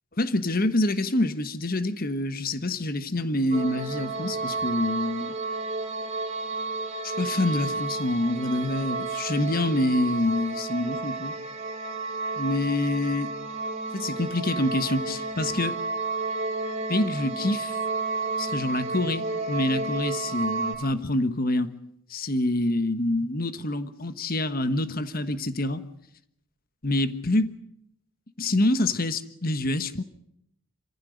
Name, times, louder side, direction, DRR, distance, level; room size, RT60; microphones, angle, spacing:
voice 1, 0.2-5.3 7.0-11.3 12.4-13.3 13.9-15.8 16.9-17.8 18.4-21.7 22.1-25.8 26.8-27.5 28.4-30.0, left 1 dB, 45° left, 1.3 m, -26 dB
sound 1, 3.5-20.8, right 3 dB, 30° right, 3.9 m, -31 dB
27.0 x 15.5 x 8.1 m
head